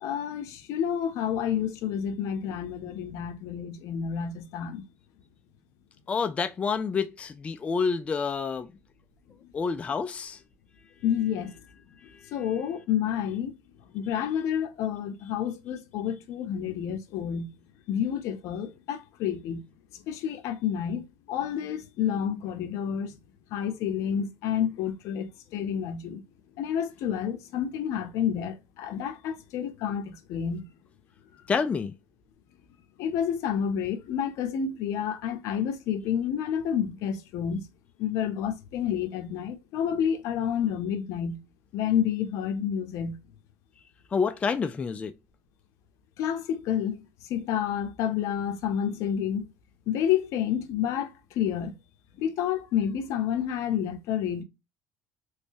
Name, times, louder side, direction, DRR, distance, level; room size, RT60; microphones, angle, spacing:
voice 1, 0.0-4.8 11.0-11.5 12.3-13.6 13.9-17.5 17.9-19.6 20.1-23.1 23.5-26.2 26.6-30.6 33.0-37.7 38.0-41.4 41.7-43.2 46.2-47.0 47.3-49.5 49.9-51.7 52.2-54.4, left 9 dB, 75° left, 0.7 m, -29 dB
voice 2, 6.1-8.7 9.5-10.4 12.1-12.3 31.5-31.9 44.1-45.1, left 5 dB, 25° left, 0.3 m, -28 dB
3.2 x 3.1 x 2.6 m
cardioid pair, 130°, 5 cm